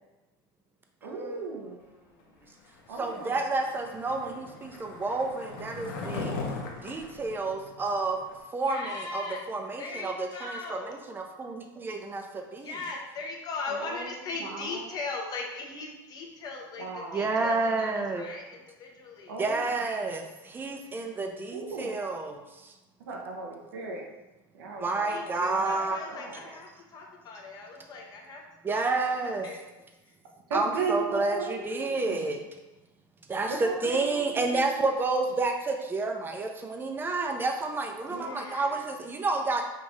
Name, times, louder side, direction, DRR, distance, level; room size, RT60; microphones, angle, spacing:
voice 1, 1.0-1.8 2.9-3.6 13.7-15.0 16.8-17.3 19.3-19.9 21.5-22.0 23.0-24.1 24.5-26.5 30.5-32.3 33.5-34.1 34.3-34.8 38.0-38.4, right 4 dB, 90° right, 0 dB, 0.9 m, -37 dB
Skateboard, 2.9-8.4, left 3 dB, 85° left, 0.9 m, -39 dB
voice 2, 3.0-6.3 6.8-8.2 8.5-12.8 17.1-18.2 19.4-22.7 24.8-26.4 28.6-29.5 30.5-32.4 33.3-33.5 33.8-39.6, right 3 dB, 20° right, 3 dB, 0.6 m, -30 dB
voice 3, 8.6-9.4 9.8-11.0 12.6-16.9 17.1-19.3 25.0-28.4 28.7-28.9 29.4-29.6 38.2-38.8, left 3 dB, 35° left, 0 dB, 0.9 m, -39 dB
5.4 x 2.6 x 3.1 m, 1.1 s
supercardioid pair, 110°, 11 cm